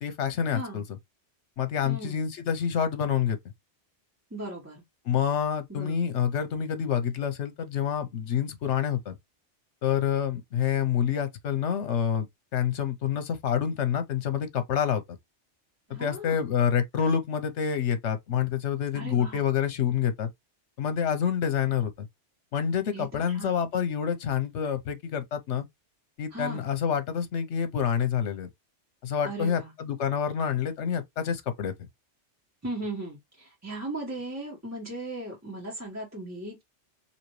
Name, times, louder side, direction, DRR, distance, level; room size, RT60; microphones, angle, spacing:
voice 1, 0.0-0.8 1.6-3.4 5.1-9.2 9.8-15.0 15.9-20.3 20.8-22.1 22.5-25.6 26.2-28.5 29.0-31.7, left 8 dB, 75° left, 1.1 m, -27 dB
voice 2, 0.5-0.8 1.8-2.2 4.3-4.8 5.7-6.2 15.9-16.4 18.9-19.4 22.9-23.6 26.3-26.6 29.2-29.7 32.6-36.6, right 2 dB, 15° right, 1.5 m, -37 dB
4.0 x 2.9 x 3.1 m
omnidirectional pair, 1.2 m